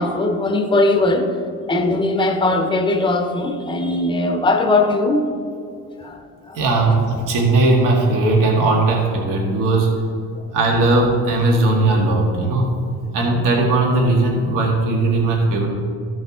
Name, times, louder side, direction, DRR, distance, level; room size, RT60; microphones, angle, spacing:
voice 1, 0.0-1.4 1.7-5.3 6.0-6.6, left 2 dB, 15° left, 5 dB, 0.7 m, -19 dB
voice 2, 6.6-10.0 10.5-12.7 13.1-15.7, right 2 dB, 65° right, -1 dB, 1.8 m, -18 dB
14.0 x 5.3 x 3.6 m, 2.4 s
cardioid pair, 130°, 35 cm